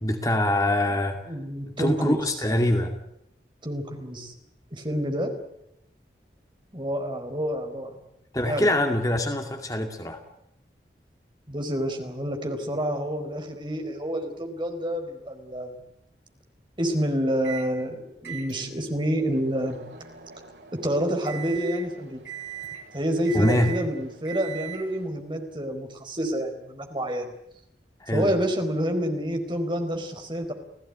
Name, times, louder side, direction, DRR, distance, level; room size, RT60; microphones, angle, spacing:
voice 1, 0.0-1.2 1.7-3.0 8.3-10.2 23.3-23.8 28.0-28.3, left 1 dB, 20° left, 2.3 m, -24 dB
voice 2, 1.3-2.4 3.6-4.3 4.7-5.4 6.7-7.9 8.4-8.7 11.5-15.7 16.8-19.8 20.7-22.2 22.9-27.3 28.1-30.5, equal, 25° right, 4.3 m, -28 dB
Microwave oven, 17.4-17.7 18.2-25.1, right 9 dB, 85° right, 5.2 m, -41 dB
29.0 x 17.5 x 9.7 m
head